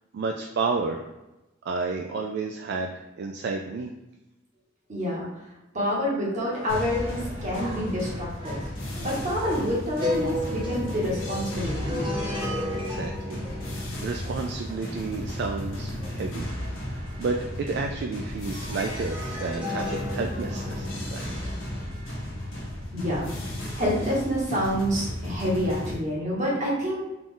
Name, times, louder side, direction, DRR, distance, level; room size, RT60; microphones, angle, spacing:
voice 1, 0.1-1.1 1.7-3.9 12.7-16.5 16.9-21.2, right 4 dB, 60° right, 3 dB, 0.3 m, -31 dB
voice 2, 4.9-5.3 5.7-8.6 9.0-12.0 22.9-23.3 23.7-27.0, equal, 40° right, -5 dB, 1.4 m, -27 dB
sound 1, 6.5-18.1 18.5-21.9, left 1 dB, 25° right, 1.2 m, -35 dB
sound 2, 6.7-26.0, left 1 dB, 80° left, 1.1 m, -34 dB
3.8 x 2.4 x 3.7 m, 0.98 s
head